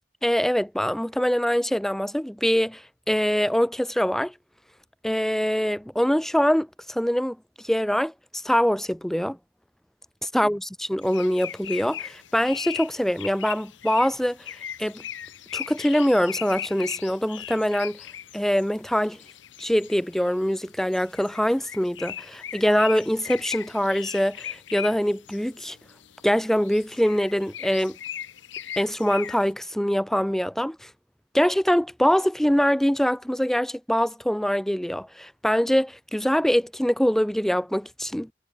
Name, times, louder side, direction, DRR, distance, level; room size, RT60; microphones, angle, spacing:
voice 1, 0.2-4.3 5.0-7.4 7.6-9.4 10.3-14.4 14.8-15.0 15.5-18.0 18.3-19.2 19.6-25.8 26.2-28.0 28.8-30.9 31.3-38.3, equal, ahead, 0.4 m, -24 dB
sound 1, 11.0-29.5, left 10 dB, 80° left, 0.9 m, -39 dB
head